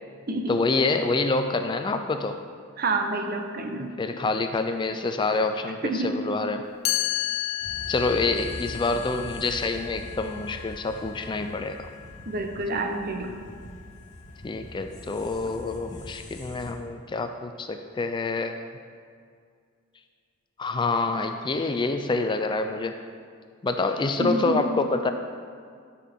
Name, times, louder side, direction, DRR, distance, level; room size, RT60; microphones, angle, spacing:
voice 1, 0.5-2.4 3.8-6.6 7.9-11.9 14.4-18.6 20.6-22.9 23.6-25.1, left 3 dB, 25° left, 7 dB, 0.4 m, -27 dB
voice 2, 2.8-3.9 5.8-6.1 12.3-13.3 24.2-24.7, right 2 dB, 50° right, 5 dB, 0.8 m, -28 dB
Chime, 6.9-12.7, left 13 dB, 85° left, 0.6 m, -33 dB
sound 1, 7.6-16.7, left 1 dB, 40° left, 1.2 m, -42 dB
12.5 x 5.6 x 3.6 m, 2.1 s
head